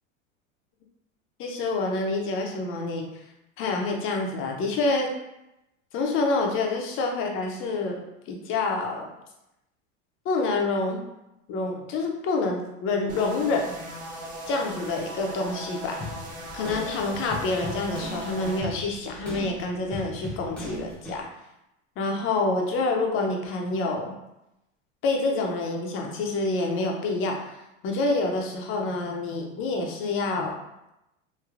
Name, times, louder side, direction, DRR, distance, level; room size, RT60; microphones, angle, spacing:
voice 1, 1.4-3.1 3.6-5.1 5.9-9.1 10.2-11.0 11.5-13.7 14.5-16.0 16.5-21.3 22.0-24.1 25.0-27.5 27.8-30.6, left 3 dB, 35° left, 2 dB, 0.5 m, -27 dB
sound 1, 13.1-18.6, equal, 20° right, 0.4 m, -39 dB
sound 2, 16.0-21.2, equal, 5° left, 0.7 m, -38 dB
3.1 x 2.5 x 2.4 m, 0.89 s
supercardioid pair, 120°, 40 cm